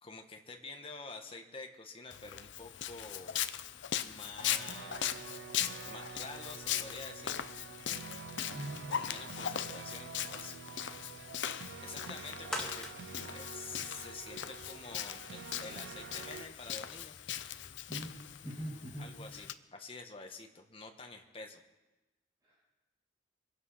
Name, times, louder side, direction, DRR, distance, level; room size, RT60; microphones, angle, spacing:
voice 1, 0.0-3.4 4.0-5.1 5.9-7.5 8.9-10.5 10.9-11.1 11.8-12.9 13.1-17.2 19.0-21.6, left 3 dB, 30° left, 4 dB, 1.3 m, -48 dB
Walk footsteps, 2.1-19.5, left 10 dB, 80° left, 0.6 m, -40 dB
sound 1, 4.4-16.5, right 5 dB, 65° right, 0.4 m, -48 dB
voice 2, 8.5-8.8 17.9-18.2 18.4-19.1 22.4-22.5, right 1 dB, 20° right, -9 dB, 5.6 m, -42 dB
sound 2, 12.0-14.4 14.9-15.0, equal, 5° left, 1.8 m, -44 dB
24.0 x 8.1 x 5.7 m, 1.1 s
head